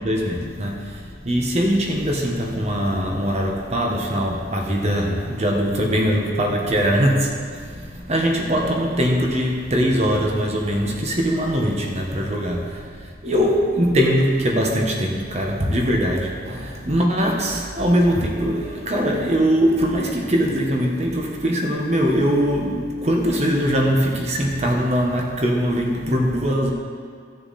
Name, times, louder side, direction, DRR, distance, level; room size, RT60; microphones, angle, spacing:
voice 1, 0.0-26.7, equal, 35° right, 0 dB, 1.2 m, -21 dB
14.5 x 6.7 x 4.2 m, 2.2 s
head